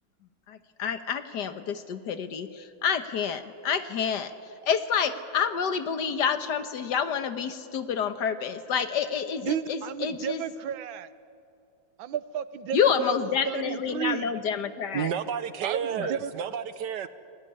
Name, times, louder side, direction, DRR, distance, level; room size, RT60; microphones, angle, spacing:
voice 1, 0.5-4.3 4.6-10.4 12.7-15.1 16.0-16.1, left 7 dB, 60° left, 10 dB, 1.7 m, -28 dB
voice 2, 9.4-11.1 12.0-13.1 13.4-14.4 15.6-16.3, right 8 dB, 90° right, 14 dB, 1.7 m, -33 dB
voice 3, 14.9-17.1, right 8 dB, 65° right, 13 dB, 1.5 m, -31 dB
28.0 x 19.0 x 10.0 m, 2.5 s
omnidirectional pair, 2.1 m